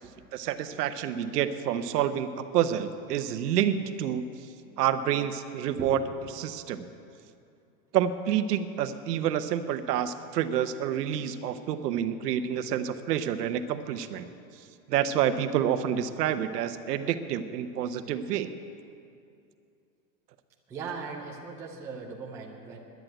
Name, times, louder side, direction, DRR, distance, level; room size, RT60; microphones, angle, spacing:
voice 1, 0.3-4.3 4.8-6.0 6.3-6.9 7.9-14.3 14.9-18.5, right 10 dB, 75° right, 11 dB, 1.0 m, -28 dB
voice 2, 20.7-22.8, right 5 dB, 5° right, -1 dB, 0.4 m, -39 dB
10.5 x 9.9 x 9.1 m, 2.5 s
supercardioid pair, 160°, 48 cm